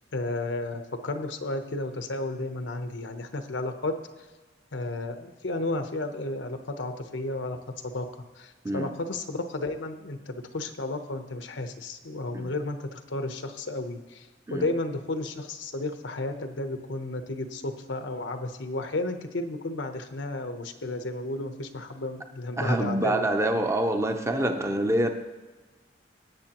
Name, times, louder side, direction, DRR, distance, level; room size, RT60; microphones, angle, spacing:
voice 1, 0.1-4.0 4.7-7.6 7.8-8.1 8.4-23.3, left 2 dB, 85° left, 7 dB, 0.9 m, -33 dB
voice 2, 22.6-25.1, right 1 dB, 15° right, 5 dB, 0.6 m, -26 dB
18.5 x 7.2 x 3.0 m, 1.2 s
head